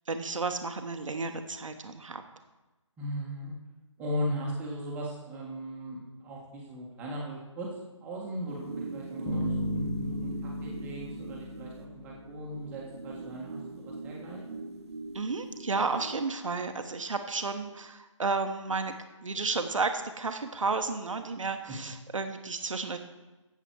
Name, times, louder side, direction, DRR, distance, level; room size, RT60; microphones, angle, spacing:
voice 1, 0.1-2.2 15.1-18.9 19.2-23.0, right 4 dB, 80° right, 7 dB, 1.1 m, -32 dB
voice 2, 3.0-3.5 4.0-7.7 8.0-14.4, equal, 10° right, -3 dB, 1.5 m, -38 dB
sound 1, 8.5-16.3, right 3 dB, 55° right, 1.1 m, -42 dB
sound 2, 9.3-12.7, left 1 dB, 15° left, 1.6 m, -35 dB
11.5 x 8.1 x 4.7 m, 1.1 s
figure-of-eight pair, 155°, 16 cm